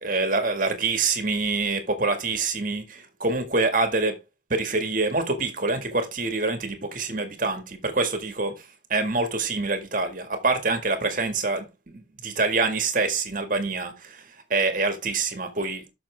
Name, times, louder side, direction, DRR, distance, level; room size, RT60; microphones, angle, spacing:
voice 1, 0.0-4.2 4.5-8.5 8.9-11.7 11.9-14.2 14.5-15.9, right 3 dB, 45° right, 1.9 m, -26 dB
8.8 x 6.5 x 3.5 m
head